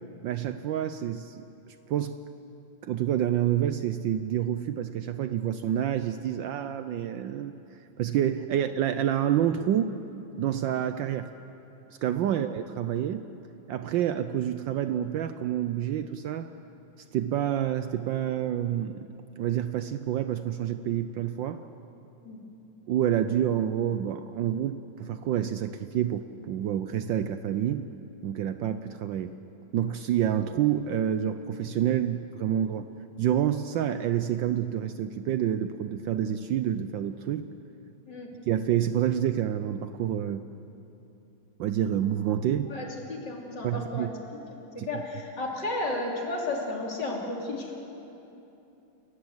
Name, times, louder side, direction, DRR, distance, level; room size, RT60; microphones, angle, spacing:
voice 1, 0.2-2.1 2.8-7.6 8.0-9.9 10.4-11.3 12.0-13.2 13.7-16.5 17.1-19.1 19.4-21.6 22.9-27.8 28.2-29.3 29.7-32.9 33.2-37.4 38.5-40.5 41.6-42.7 43.6-44.1 44.8-44.9, right 10 dB, 70° right, 10 dB, 1.2 m, -28 dB
voice 2, 42.7-44.1 44.5-47.8, left 2 dB, 50° left, -1 dB, 3.7 m, -33 dB
29.5 x 14.5 x 7.9 m, 2.9 s
omnidirectional pair, 2.4 m